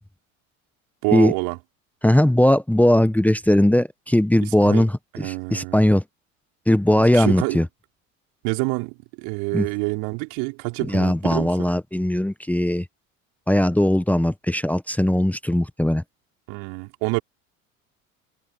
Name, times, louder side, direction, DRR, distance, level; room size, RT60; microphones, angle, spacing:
voice 1, 1.0-1.6 4.4-4.9 5.1-5.8 7.1-7.6 8.4-11.7 16.5-17.2, right 33 dB, 65° right, 4.2 m, -27 dB
voice 2, 2.0-6.0 6.7-7.6 9.5-9.7 10.9-12.8 13.5-16.0, left 1 dB, 5° left, 1.4 m, -19 dB
figure-of-eight pair, 65°, 41 cm